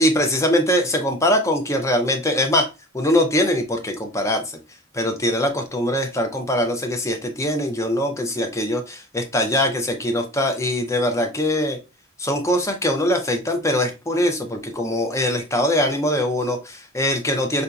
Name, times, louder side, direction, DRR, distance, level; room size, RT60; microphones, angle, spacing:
voice 1, 0.0-2.7 2.9-4.6 4.9-11.8 12.2-17.6, left 1 dB, 15° left, 5 dB, 0.6 m, -22 dB
4.6 x 2.7 x 2.3 m, 0.28 s
head